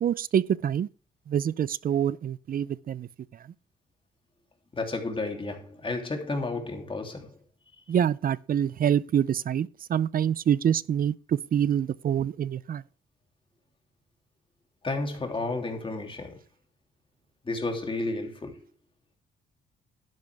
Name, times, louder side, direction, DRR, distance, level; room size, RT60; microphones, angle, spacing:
voice 1, 0.0-0.9 1.3-3.1 7.9-12.8, right 9 dB, 45° right, 0.5 m, -26 dB
voice 2, 4.7-7.4 14.8-16.4 17.4-18.6, left 2 dB, 25° left, 3.1 m, -32 dB
12.0 x 10.5 x 3.5 m
cardioid pair, 90°, 20 cm